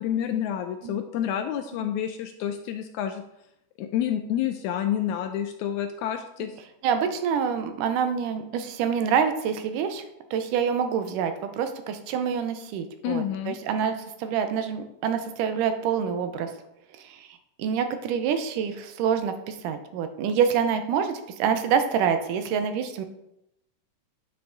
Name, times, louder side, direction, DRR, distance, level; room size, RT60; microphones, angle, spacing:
voice 1, 0.0-3.2 3.8-6.5 13.0-13.6, left 10 dB, 80° left, 7 dB, 1.7 m, -29 dB
voice 2, 6.8-10.0 10.3-16.5 17.6-23.0, right 7 dB, 85° right, 8 dB, 2.3 m, -26 dB
9.2 x 5.7 x 3.8 m, 0.84 s
omnidirectional pair, 3.7 m